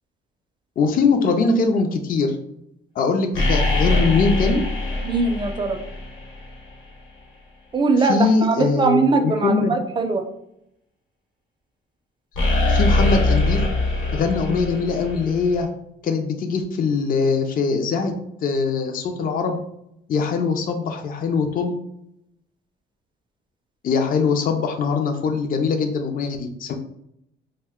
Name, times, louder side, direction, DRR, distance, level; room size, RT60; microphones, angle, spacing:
voice 1, 0.8-2.4 3.0-4.6 8.0-9.7 12.7-13.6 14.1-15.7 16.0-18.1 18.4-19.6 20.1-21.7 23.8-26.7, left 4 dB, 45° left, 4 dB, 0.4 m, -22 dB
sound 1, 3.3-6.6 12.3-15.6, left 2 dB, 80° left, 1.0 m, -22 dB
voice 2, 5.0-5.8 7.7-10.2, right 3 dB, 25° right, 5 dB, 0.5 m, -21 dB
2.5 x 2.2 x 3.5 m, 0.77 s
cardioid pair, 90°, 20 cm